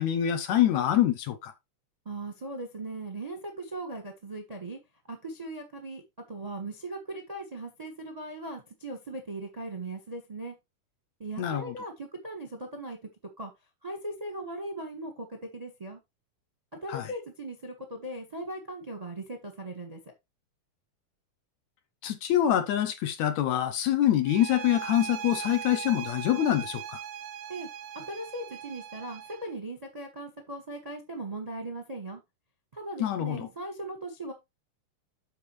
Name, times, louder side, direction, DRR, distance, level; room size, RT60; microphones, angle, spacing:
voice 1, 0.0-1.5 11.4-11.7 16.9-17.1 22.0-27.0 33.0-33.5, left 11 dB, 70° left, 1.9 m, -25 dB
voice 2, 2.0-4.8 5.1-6.0 6.3-10.5 11.2-13.0 13.4-13.5 13.8-16.0 16.7-20.1 27.5-27.7 27.9-32.2 32.7-34.3, right 2 dB, 20° right, 0.9 m, -39 dB
sound 1, 24.3-29.5, right 9 dB, 90° right, 2.4 m, -39 dB
12.0 x 4.9 x 3.2 m
omnidirectional pair, 3.7 m